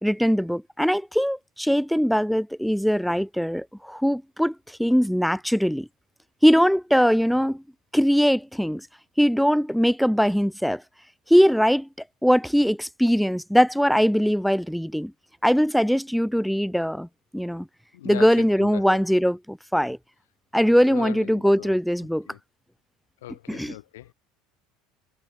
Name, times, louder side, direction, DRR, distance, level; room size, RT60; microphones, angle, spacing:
voice 1, 0.0-4.5 4.8-5.9 6.4-7.6 7.9-8.8 9.2-10.8 11.3-11.9 12.2-15.1 15.4-17.1 17.3-17.7 18.0-20.0 20.5-22.3 23.5-23.7, equal, ahead, 2.2 m, -21 dB
voice 2, 17.9-19.0 20.6-21.8 22.3-22.4 23.2-24.1, left 15 dB, 80° left, 2.0 m, -39 dB
hypercardioid pair, 80°, 0 cm